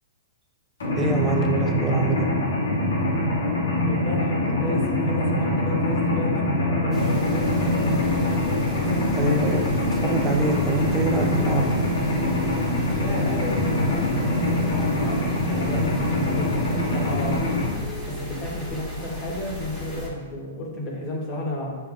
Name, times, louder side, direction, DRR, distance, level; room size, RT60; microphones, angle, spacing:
Mechanisms, 0.8-17.7, left 1 dB, 85° left, 1.3 m, -24 dB
voice 1, 1.0-2.3 9.1-9.6 9.9-11.8, right 3 dB, 15° right, 2 dB, 0.5 m, -25 dB
voice 2, 3.9-8.6 12.9-16.0 16.3-17.4 18.1-21.8, left 1 dB, 30° left, -3 dB, 1.1 m, -33 dB
sound 1, 6.9-20.1, equal, 5° left, 1.2 m, -35 dB
7.2 x 2.6 x 2.4 m, 1.4 s
hypercardioid pair, 130°, 0 cm